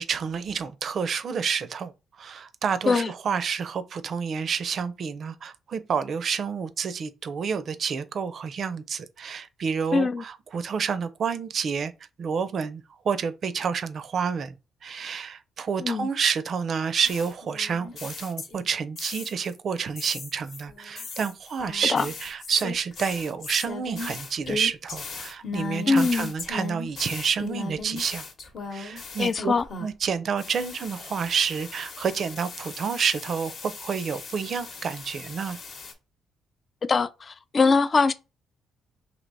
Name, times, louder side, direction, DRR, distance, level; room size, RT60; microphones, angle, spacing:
voice 1, 0.0-1.9 2.2-11.9 12.2-14.6 14.8-28.2 28.7-29.5 29.8-35.6, right 6 dB, 55° right, 0.5 m, -29 dB
voice 2, 9.9-10.2 15.8-16.1 21.9-22.1 25.9-26.3 29.2-29.6 36.9-38.1, left 4 dB, 40° left, 0.3 m, -22 dB
sound 1, 17.0-19.5 20.0-30.1 30.4-35.9, left 4 dB, 60° left, 0.9 m, -38 dB
3.3 x 2.8 x 3.9 m
cardioid pair, 90°, 0 cm